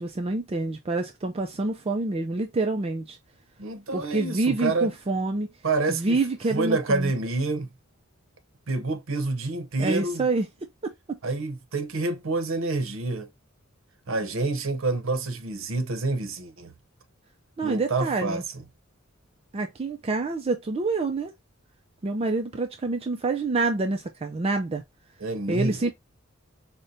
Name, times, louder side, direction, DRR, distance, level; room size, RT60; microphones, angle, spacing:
voice 1, 0.0-3.2 3.9-5.5 5.9-7.1 9.8-10.5 10.8-10.9 17.6-18.4 19.5-21.3 22.0-24.8 25.5-25.9, right 3 dB, 30° right, 0.4 m, -27 dB
voice 2, 3.6-4.9 5.6-6.2 6.5-7.7 8.7-10.3 11.2-13.3 14.1-16.7 17.6-18.6 25.2-25.9, right 3 dB, 70° right, 0.8 m, -28 dB
5.1 x 2.1 x 2.7 m
head